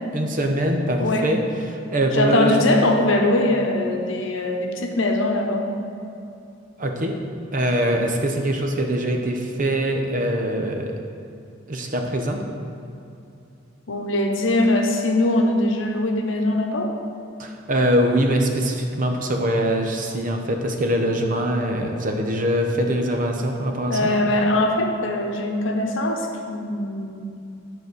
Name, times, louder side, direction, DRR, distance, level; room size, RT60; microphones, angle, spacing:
voice 1, 0.1-2.7 6.8-7.1 7.5-11.0 11.7-12.4 17.4-24.1, right 1 dB, 45° right, 3 dB, 0.8 m, -23 dB
voice 2, 2.1-5.6 13.9-16.9 23.9-27.3, left 1 dB, 75° left, 3 dB, 0.9 m, -21 dB
9.4 x 4.1 x 6.5 m, 2.7 s
head